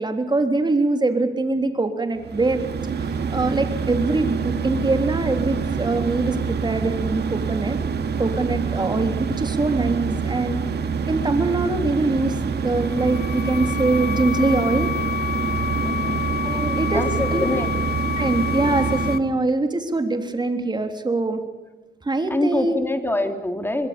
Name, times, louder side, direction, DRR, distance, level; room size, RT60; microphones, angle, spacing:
voice 1, 0.0-2.6 3.3-7.8 8.2-10.6 11.1-14.9 16.4-17.0 17.3-17.5 18.2-21.4 22.0-22.8, right 2 dB, 20° right, 6 dB, 3.4 m, -23 dB
sound 1, 2.2-19.2, right 5 dB, 55° right, 2.5 m, -26 dB
sound 2, 12.7-19.2, left 8 dB, 45° left, 1.1 m, -29 dB
voice 2, 15.8-16.2 16.9-17.7 22.3-23.9, left 1 dB, 10° left, 7 dB, 3.0 m, -25 dB
24.5 x 21.0 x 7.1 m, 1.1 s
cardioid pair, 90°, 20 cm